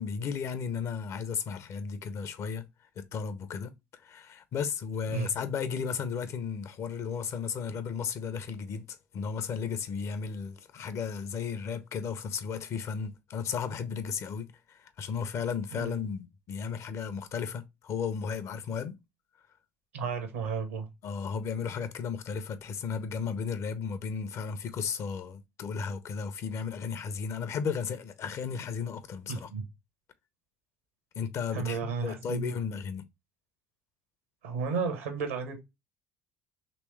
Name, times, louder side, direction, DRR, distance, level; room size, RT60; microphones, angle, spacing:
voice 1, 0.0-19.0 21.0-29.5 31.2-33.0, left 6 dB, 45° left, 0.5 m, -34 dB
voice 2, 19.9-20.9 29.3-29.7 31.5-32.5 34.4-35.6, right 5 dB, 80° right, 0.9 m, -33 dB
3.1 x 3.0 x 3.1 m
figure-of-eight pair, 60°, 7 cm